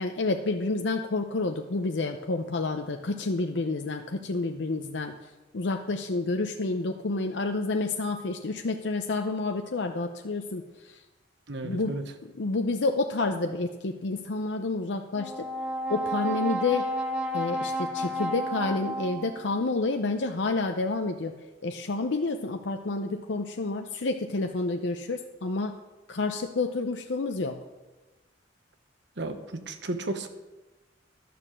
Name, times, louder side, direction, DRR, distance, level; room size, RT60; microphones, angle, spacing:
voice 1, 0.0-11.0 11.6-12.0 12.2-15.5 15.9-16.9 17.3-21.3 21.6-25.8 26.1-27.6, left 3 dB, 80° left, 5 dB, 0.7 m, -29 dB
voice 2, 11.5-12.0 29.2-30.3, right 2 dB, 70° right, 8 dB, 1.1 m, -33 dB
Brass instrument, 15.2-19.6, right 1 dB, 5° right, 1.5 m, -31 dB
12.0 x 6.8 x 7.3 m, 1.1 s
head